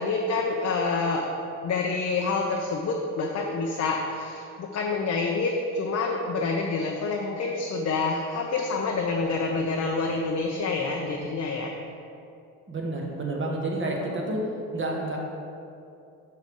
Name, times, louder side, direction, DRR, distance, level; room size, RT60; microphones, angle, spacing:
voice 1, 0.0-1.4 1.6-11.8, left 3 dB, 45° left, 1 dB, 0.7 m, -27 dB
voice 2, 12.7-14.4 14.7-15.2, right 2 dB, 30° right, -1 dB, 1.4 m, -29 dB
6.2 x 5.4 x 3.7 m, 2.6 s
supercardioid pair, 60°, 37 cm